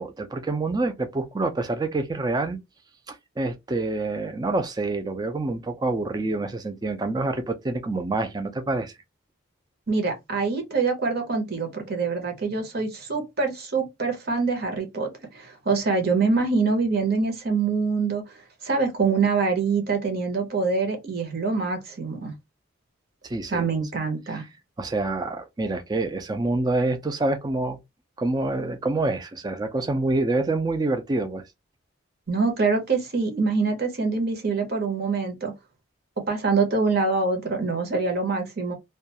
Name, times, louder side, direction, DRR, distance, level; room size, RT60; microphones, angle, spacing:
voice 1, 0.0-2.6 3.1-8.9 23.2-23.7 24.8-27.8 28.2-31.4, right 2 dB, 20° right, 0.4 m, -27 dB
voice 2, 9.9-18.4 18.6-22.3 23.5-24.4 32.3-35.5 36.3-38.7, right 4 dB, 50° right, 0.8 m, -25 dB
2.4 x 2.2 x 2.8 m
head